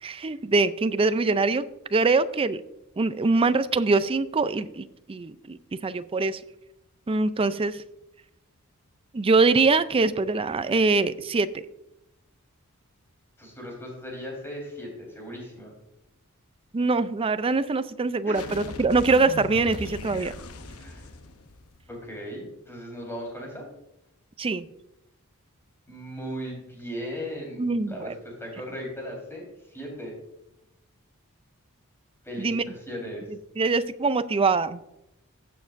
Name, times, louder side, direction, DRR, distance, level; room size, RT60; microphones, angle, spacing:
voice 1, 0.0-2.6 3.0-6.4 7.1-7.8 9.1-11.6 16.7-20.3 24.4-24.7 27.6-28.1 32.4-32.6 33.6-34.8, right 3 dB, 25° right, 13 dB, 0.4 m, -23 dB
voice 2, 13.4-15.7 18.2-18.5 20.8-21.1 21.9-23.7 25.9-30.1 32.2-33.2, equal, 10° left, -2 dB, 4.0 m, -37 dB
sound 1, 18.3-22.0, left 2 dB, 70° left, 0.8 m, -39 dB
15.5 x 7.3 x 2.5 m, 0.87 s
head